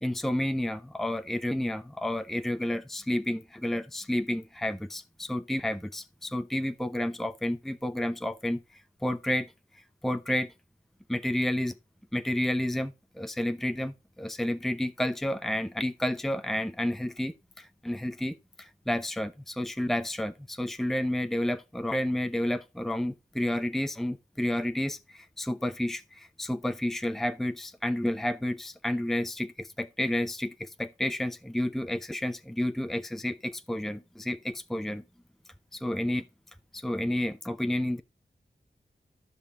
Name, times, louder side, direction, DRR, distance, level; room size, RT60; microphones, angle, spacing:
voice 1, 0.0-8.6 9.0-9.5 10.0-10.5 11.1-11.7 12.1-35.0 35.7-36.2 36.7-38.0, left 1 dB, ahead, 0.7 m, -30 dB
14.0 x 5.4 x 3.8 m
wide cardioid pair, 60°, 17 cm